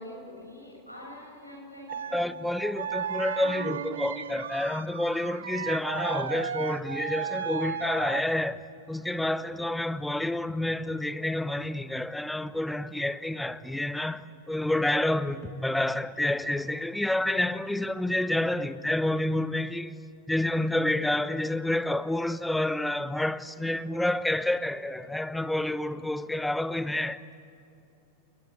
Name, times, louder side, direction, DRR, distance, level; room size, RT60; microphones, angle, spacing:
voice 1, 0.0-2.2, left 1 dB, 90° left, 7.5 m, -44 dB
sound 1, 1.9-8.3, right 8 dB, 65° right, 0.8 m, -34 dB
voice 2, 2.1-8.6 8.9-20.0 20.3-27.4, left 1 dB, 5° left, 0.9 m, -29 dB
29.0 x 21.5 x 9.0 m
figure-of-eight pair, 90°, 0 cm